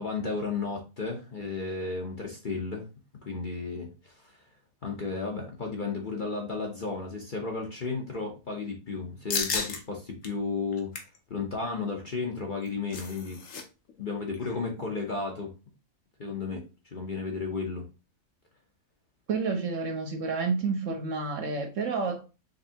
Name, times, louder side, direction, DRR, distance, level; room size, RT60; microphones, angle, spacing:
voice 1, 0.0-2.9 3.2-4.4 4.8-10.9 11.3-13.4 14.0-15.5 16.2-17.8, left 4 dB, 40° left, 0.8 m, -33 dB
sound 1, 9.3-9.8 10.2-10.3 10.7-11.2 12.4-13.6 13.9-14.0 14.3-14.6, left 5 dB, 60° left, 1.2 m, -33 dB
voice 2, 19.3-22.2, right 4 dB, 60° right, 1.1 m, -29 dB
5.2 x 3.3 x 2.7 m
omnidirectional pair, 1.6 m